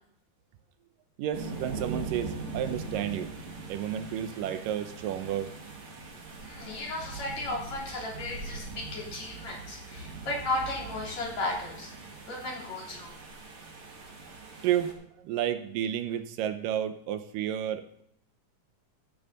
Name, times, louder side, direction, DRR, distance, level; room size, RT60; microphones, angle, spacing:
voice 1, 1.2-3.3 3.7-5.6 14.6-15.0 15.2-18.0, right 10 dB, 80° right, 10 dB, 2.5 m, -31 dB
sound 1, 1.3-14.9, right 3 dB, 45° right, 2.5 m, -41 dB
voice 2, 6.4-13.2, left 2 dB, 55° left, -3 dB, 4.5 m, -35 dB
14.0 x 9.5 x 4.0 m, 0.70 s
omnidirectional pair, 3.9 m